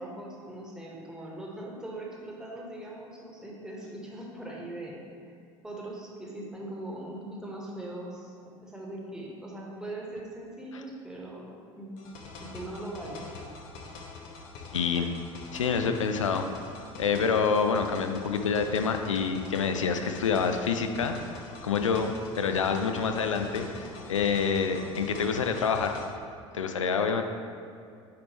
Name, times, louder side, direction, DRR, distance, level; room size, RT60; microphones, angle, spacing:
voice 1, 0.0-5.3 5.6-12.0 12.4-13.4 23.7-24.4, right 1 dB, 5° right, -3 dB, 1.4 m, -41 dB
sound 1, 12.0-26.0, left 3 dB, 55° left, 1.0 m, -44 dB
voice 2, 14.7-15.2 15.5-16.5 17.0-21.2 21.6-23.8 24.1-26.0 26.5-27.2, left 5 dB, 90° left, 6 dB, 0.4 m, -27 dB
9.4 x 3.5 x 3.1 m, 2.4 s
figure-of-eight pair, 65°, 16 cm